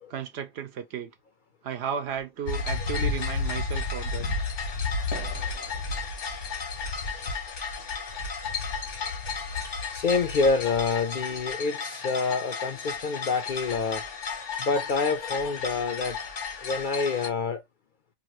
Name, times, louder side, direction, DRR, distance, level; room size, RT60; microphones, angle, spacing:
voice 1, 0.1-1.1 1.6-4.2, right 8 dB, 65° right, 0.8 m, -34 dB
sound 1, 2.5-17.3, left 4 dB, 90° left, 1.4 m, -32 dB
voice 2, 9.9-14.0 14.6-16.2 16.6-17.6, left 4 dB, 60° left, 0.5 m, -27 dB
2.9 x 2.5 x 2.9 m
omnidirectional pair, 1.2 m